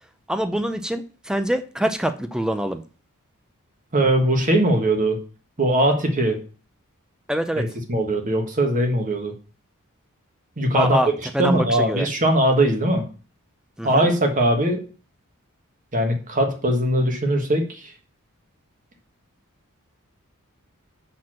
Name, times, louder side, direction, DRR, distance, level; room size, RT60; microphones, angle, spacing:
voice 1, 0.3-2.8 7.3-7.7 10.7-12.1 13.8-14.1, equal, 5° right, 10 dB, 0.5 m, -25 dB
voice 2, 3.9-5.2 5.6-6.4 7.6-9.3 10.6-11.0 11.4-13.1 13.8-14.8 15.9-17.9, right 1 dB, 35° right, 4 dB, 1.5 m, -20 dB
6.0 x 4.3 x 6.3 m, 0.37 s
head